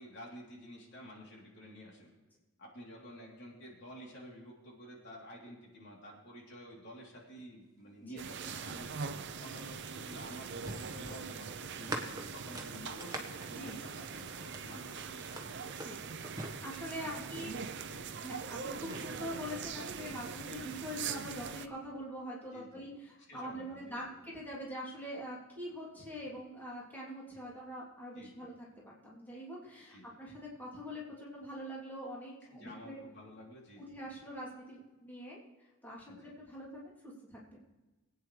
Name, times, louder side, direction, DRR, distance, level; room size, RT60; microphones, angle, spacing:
voice 1, 0.0-2.1 2.6-8.9 9.4-15.6 17.0-18.0 22.5-22.8 23.3-24.0 28.1-28.5 29.9-30.1 32.5-33.9 36.1-36.3, equal, 55° left, -3 dB, 3.2 m, -51 dB
sound 1, 8.2-21.7, right 6 dB, 55° right, 0.6 m, -42 dB
sound 2, 9.5-14.8 15.2-17.3 18.3-19.0, right 1 dB, 15° right, 1.3 m, -44 dB
voice 2, 16.6-17.5 18.2-33.0 33.8-35.4 35.8-37.6, equal, 10° left, -6 dB, 3.0 m, -44 dB
22.5 x 9.2 x 3.3 m, 1.1 s
head